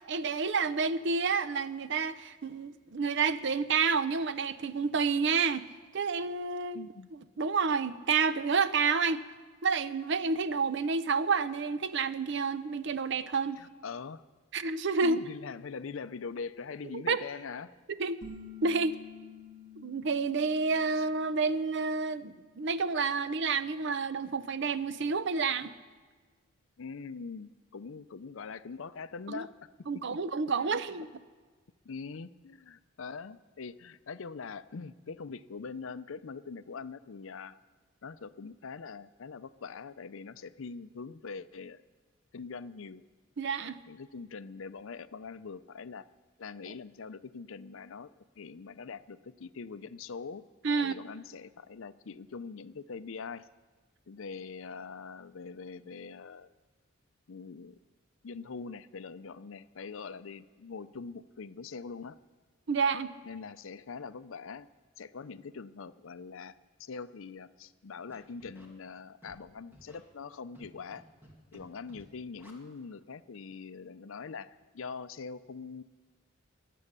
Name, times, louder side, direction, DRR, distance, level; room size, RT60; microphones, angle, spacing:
voice 1, 0.0-5.7 5.9-6.8 7.1-9.2 9.6-13.6 14.5-15.2 16.9-17.2 18.0-18.2 18.6-19.0 19.8-25.7 29.3-29.5 29.9-31.1 43.4-43.8 50.6-51.0 62.7-63.1, right 5 dB, 60° right, 14 dB, 0.6 m, -29 dB
voice 2, 6.7-7.1 13.6-14.2 15.0-17.7 21.0-21.1 26.8-29.5 30.6-30.8 31.8-37.6 38.0-41.8 42.3-43.0 43.9-46.1 46.4-48.1 48.4-50.4 50.8-53.5 54.1-56.5 57.3-57.8 58.2-62.2 63.2-64.7 65.0-71.0 71.5-75.8, left 5 dB, 70° left, 14 dB, 0.5 m, -43 dB
sound 1, 18.2-23.6, left 4 dB, 40° right, 1.9 m, -51 dB
Scratching (performance technique), 68.1-68.7 69.2-69.4 69.7-70.0 70.5-71.0 71.2-71.6 71.9-72.0 72.4-72.5, equal, 10° right, 2.2 m, -55 dB
22.5 x 8.5 x 6.7 m, 1.4 s
head